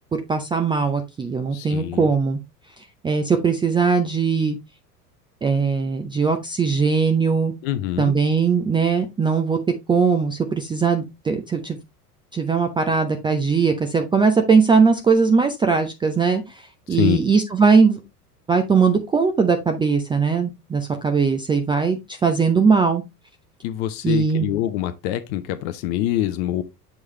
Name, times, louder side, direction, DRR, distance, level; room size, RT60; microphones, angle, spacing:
voice 1, 0.3-2.4 2.8-4.6 5.4-7.5 8.0-9.6 9.9-11.8 12.3-18.0 18.5-23.0 24.0-24.5, right 5 dB, 10° right, 0.5 m, -20 dB
voice 2, 1.5-2.1 7.6-8.1 16.9-17.2 23.6-26.6, left 13 dB, 45° left, 0.7 m, -25 dB
7.5 x 4.7 x 3.1 m
figure-of-eight pair, 75°, 47 cm